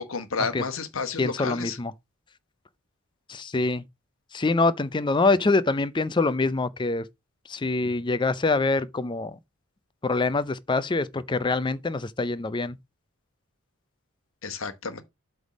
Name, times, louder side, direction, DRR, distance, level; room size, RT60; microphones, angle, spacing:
voice 1, 0.0-1.8 14.4-15.0, left 4 dB, 70° left, 1.1 m, -31 dB
voice 2, 1.2-1.9 3.3-3.8 4.3-7.1 7.5-9.4 10.0-12.8, left 3 dB, 20° left, 0.4 m, -25 dB
7.9 x 3.5 x 6.1 m
head